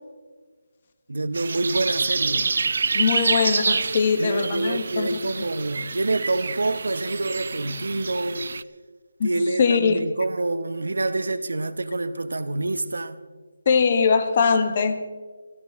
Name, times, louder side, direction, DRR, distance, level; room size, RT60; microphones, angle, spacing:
voice 1, 1.1-2.5 4.2-8.5 9.2-13.2, right 2 dB, 75° right, 0.9 m, -27 dB
sound 1, 1.3-8.6, right 4 dB, 55° right, 0.4 m, -27 dB
voice 2, 2.9-5.1 9.2-9.3 9.6-10.0 13.6-15.0, left 5 dB, 30° left, 1.1 m, -21 dB
26.5 x 11.5 x 3.6 m
figure-of-eight pair, 170°, 0 cm